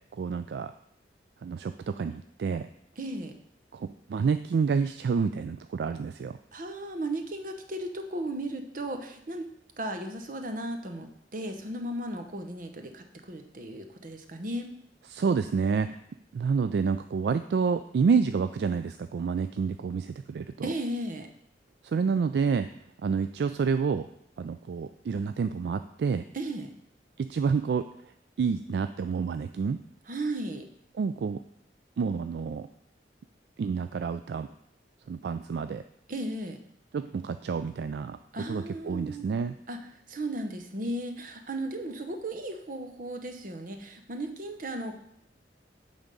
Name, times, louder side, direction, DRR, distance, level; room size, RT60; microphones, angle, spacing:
voice 1, 0.1-0.7 1.4-2.7 3.7-6.4 15.1-16.0 16.3-20.7 21.8-22.7 23.0-24.1 24.4-26.2 27.2-27.8 28.4-29.8 31.0-31.4 32.0-32.7 33.6-34.5 35.1-35.8 36.9-38.2 38.5-39.5, right 5 dB, 65° right, 10 dB, 0.3 m, -28 dB
voice 2, 3.0-3.3 6.5-9.4 9.8-14.7 20.6-21.3 26.3-26.7 30.1-30.7 36.1-36.6 38.3-39.3 39.7-45.0, right 1 dB, 50° right, 6 dB, 0.9 m, -35 dB
9.0 x 3.6 x 6.6 m, 0.74 s
head